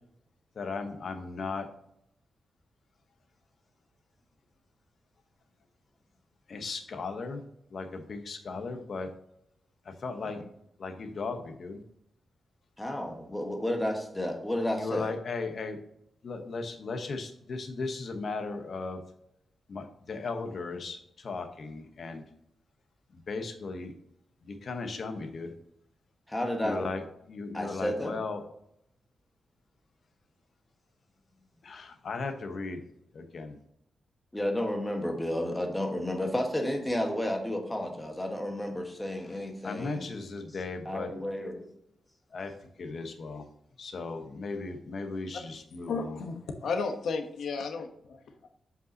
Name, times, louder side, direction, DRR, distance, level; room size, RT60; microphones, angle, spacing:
voice 1, 0.5-1.7 6.5-7.4 7.7-9.1 9.8-10.4 10.8-11.8 14.8-15.8 16.2-19.0 19.7-22.2 23.1-23.9 24.4-25.5 26.6-27.0 27.3-28.4 31.6-32.8 33.1-33.6 39.2-41.1 42.3-42.5 42.8-43.5 43.8-46.2, left 4 dB, 55° left, 6 dB, 1.0 m, -36 dB
voice 2, 12.8-15.1 26.3-26.9 27.5-28.2 34.3-40.1 40.8-41.7, left 1 dB, 10° left, 3 dB, 1.4 m, -31 dB
voice 3, 45.9-48.5, left 4 dB, 80° left, 6 dB, 1.0 m, -33 dB
7.7 x 5.4 x 2.8 m, 0.76 s
wide cardioid pair, 115°, 0 cm